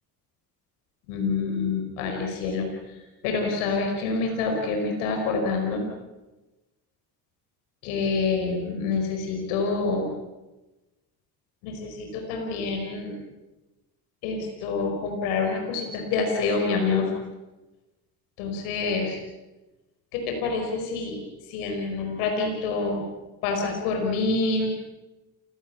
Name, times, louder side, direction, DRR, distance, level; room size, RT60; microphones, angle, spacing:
voice 1, 1.1-2.7 3.2-5.9 7.8-10.1 11.6-13.1 14.2-17.1 18.4-19.2 20.1-21.2 21.5-23.0 23.4-24.7, left 4 dB, 90° left, 2 dB, 5.2 m, -27 dB
29.0 x 17.5 x 8.5 m, 1.1 s
supercardioid pair, 65°, 43 cm